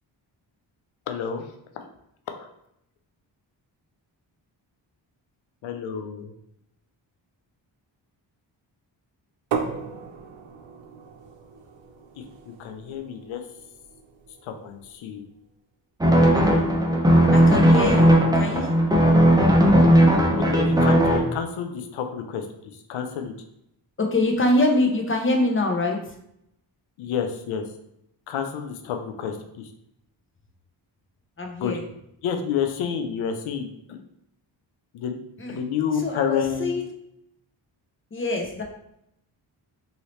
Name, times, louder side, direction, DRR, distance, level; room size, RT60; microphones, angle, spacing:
voice 1, 1.1-1.5 1.8-1.9 2.3-2.5 5.6-6.3 12.5-13.4 14.5-15.2 20.3-22.4 22.9-23.3 27.0-27.6 28.3-29.7 31.6-31.7 32.2-34.0 34.9-35.2 35.5-36.8, left 7 dB, 90° left, 6 dB, 0.6 m, -29 dB
sound 1, 9.5-15.2, right 5 dB, 65° right, 0.7 m, -36 dB
sound 2, 16.0-21.2, equal, 10° right, 0.7 m, -17 dB
voice 2, 17.3-18.7 24.0-26.1 31.4-31.8 35.4-35.6 36.0-36.9 38.1-38.6, left 2 dB, 25° left, 2 dB, 0.8 m, -24 dB
2.8 x 2.8 x 3.1 m, 0.78 s
cardioid pair, 50°, 47 cm